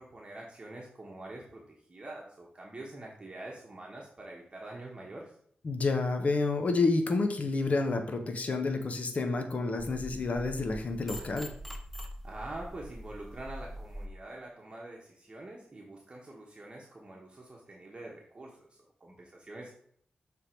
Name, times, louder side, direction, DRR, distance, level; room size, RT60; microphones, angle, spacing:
voice 1, 0.0-5.3 12.2-19.7, right 2 dB, 30° right, -2 dB, 1.1 m, -45 dB
voice 2, 5.6-11.5, left 3 dB, 50° left, 5 dB, 0.9 m, -29 dB
sound 1, 9.8-14.1, equal, 5° left, 0.9 m, -43 dB
6.6 x 3.5 x 4.4 m, 0.63 s
cardioid pair, 85°, 3 cm